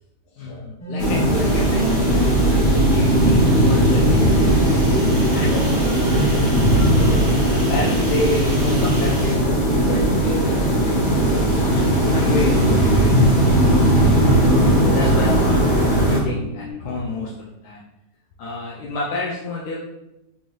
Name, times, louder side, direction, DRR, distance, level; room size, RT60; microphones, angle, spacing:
voice 1, 0.3-5.0 5.3-6.6 6.9-13.8 14.7-17.3 17.6-17.8 18.4-19.8, left 2 dB, 90° left, -4 dB, 1.1 m, -29 dB
sound 1, 0.8-16.7, left 3 dB, 35° left, 0.6 m, -34 dB
sound 2, 1.0-16.2, right 1 dB, 65° left, 1.6 m, -17 dB
sound 3, 1.3-9.3, right 1 dB, 40° right, 0.5 m, -37 dB
3.8 x 2.6 x 3.1 m, 0.88 s
omnidirectional pair, 1.6 m